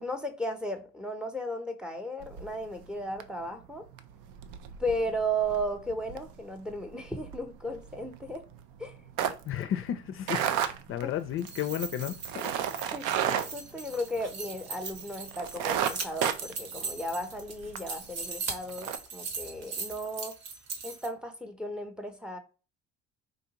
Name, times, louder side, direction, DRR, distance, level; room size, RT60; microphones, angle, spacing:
voice 1, 0.0-3.8 4.8-8.4 8.8-9.0 11.0-11.1 12.9-20.3 20.8-22.4, right 1 dB, 5° right, 0.7 m, -35 dB
sound 1, 2.2-2.9 3.2-3.5 3.8-14.6 14.9-15.0 15.3-17.8 18.2-18.3 18.7-19.0, right 9 dB, 80° right, 0.5 m, -33 dB
voice 2, 9.5-10.4 10.9-12.5, left 10 dB, 45° left, 0.4 m, -33 dB
sound 2, 11.3-21.1, right 4 dB, 55° right, 1.1 m, -39 dB
3.8 x 2.4 x 2.8 m
supercardioid pair, 95°, 30 cm